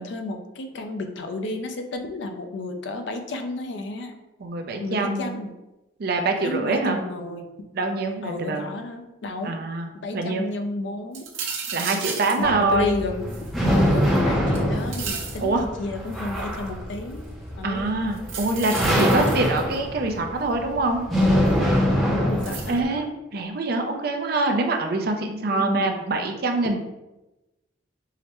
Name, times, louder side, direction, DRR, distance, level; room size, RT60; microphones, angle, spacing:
voice 1, 0.0-4.1 4.8-5.5 6.4-7.5 8.2-9.6 10.0-11.2 12.4-13.3 13.9-17.3 17.6-18.0 22.0-23.1 25.5-26.0, left 2 dB, 65° left, 5 dB, 0.4 m, -32 dB
voice 2, 4.4-5.3 6.0-7.0 7.7-8.7 9.4-10.5 11.7-13.0 15.4-15.6 17.6-21.0 22.7-26.8, right 2 dB, 50° right, 4 dB, 0.4 m, -25 dB
sound 1, 11.1-12.4 13.3-14.2 14.5-15.4 16.1-16.6 18.2-19.8 21.5-21.6 22.4-22.8, right 6 dB, 85° right, 0.7 m, -34 dB
sound 2, 12.4-22.8, equal, ahead, 0.5 m, -24 dB
4.7 x 2.1 x 2.9 m, 1.0 s
head